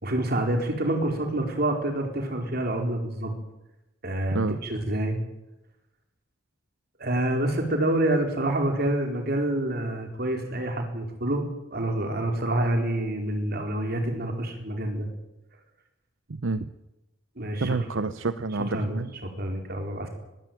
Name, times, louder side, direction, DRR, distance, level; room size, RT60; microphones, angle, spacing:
voice 1, 0.0-3.3 4.0-5.2 7.0-11.4 11.7-15.1 17.4-17.7 18.7-19.0 19.2-20.1, right 1 dB, 50° right, 4 dB, 4.4 m, -27 dB
voice 2, 16.3-16.7 17.6-19.2, right 3 dB, 80° right, 13 dB, 0.8 m, -28 dB
20.5 x 17.0 x 9.2 m, 0.96 s
head